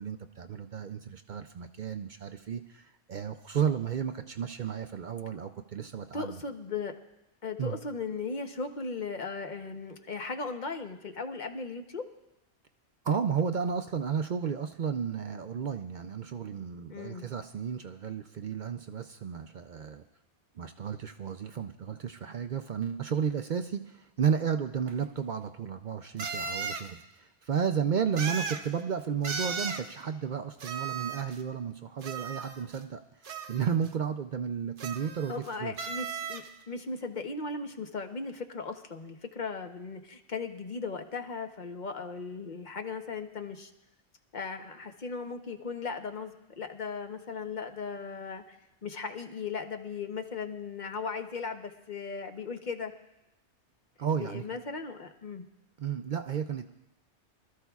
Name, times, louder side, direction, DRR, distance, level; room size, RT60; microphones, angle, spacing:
voice 1, 0.0-6.4 7.6-7.8 13.0-20.0 20.6-33.0 33.5-35.8 54.0-54.4 55.8-56.7, right 7 dB, 55° right, 7 dB, 0.6 m, -33 dB
voice 2, 6.1-6.9 7.4-12.0 16.9-17.3 35.3-43.7 44.3-48.6 48.8-52.9 54.1-55.4, left 4 dB, 45° left, 6 dB, 0.9 m, -37 dB
sound 1, 24.9-25.0 26.2-26.9 28.2-28.7 29.2-29.9 30.6-31.4 32.0-32.8 33.3-33.9 34.8-35.5 35.8-36.5, right 5 dB, 75° right, 1.2 m, -36 dB
24.5 x 13.5 x 2.4 m, 0.92 s
omnidirectional pair, 1.2 m